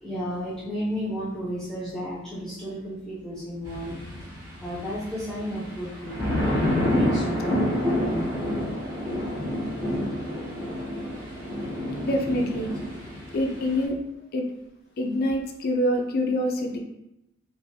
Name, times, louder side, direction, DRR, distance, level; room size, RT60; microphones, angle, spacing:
voice 1, 0.0-4.0 4.6-8.3, equal, 5° left, -10 dB, 0.5 m, -33 dB
sound 1, 3.6-13.8, left 1 dB, 20° right, 0.8 m, -29 dB
voice 2, 12.0-12.7 13.3-14.0 14.3-14.5 15.0-16.8, left 1 dB, 50° left, 3 dB, 0.4 m, -25 dB
3.1 x 2.5 x 2.6 m, 0.88 s
head